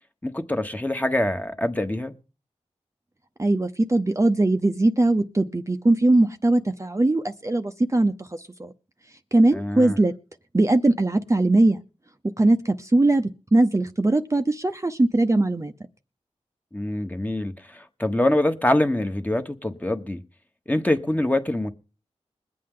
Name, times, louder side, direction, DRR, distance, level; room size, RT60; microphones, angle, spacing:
voice 1, 0.2-2.1 9.5-10.0 16.7-20.2 20.7-21.7, left 1 dB, 15° left, 1.3 m, -24 dB
voice 2, 3.4-8.7 9.3-10.1 10.5-11.8 12.4-15.7, right 2 dB, 25° right, 0.8 m, -20 dB
21.5 x 8.5 x 3.8 m
cardioid pair, 50°, 12 cm